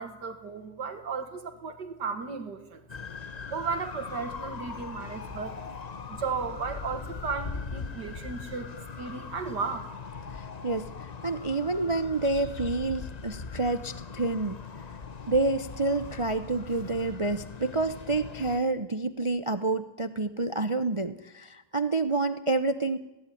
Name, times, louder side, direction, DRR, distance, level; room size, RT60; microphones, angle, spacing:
voice 1, 0.0-2.8 3.5-5.6 6.1-9.9, right 5 dB, 75° right, 8 dB, 2.3 m, -35 dB
sound 1, 2.9-18.6, left 5 dB, 30° left, 0.8 m, -40 dB
voice 2, 10.3-14.6 15.3-23.0, right 3 dB, 40° right, 12 dB, 0.4 m, -28 dB
20.0 x 16.5 x 9.9 m, 1.0 s
omnidirectional pair, 1.8 m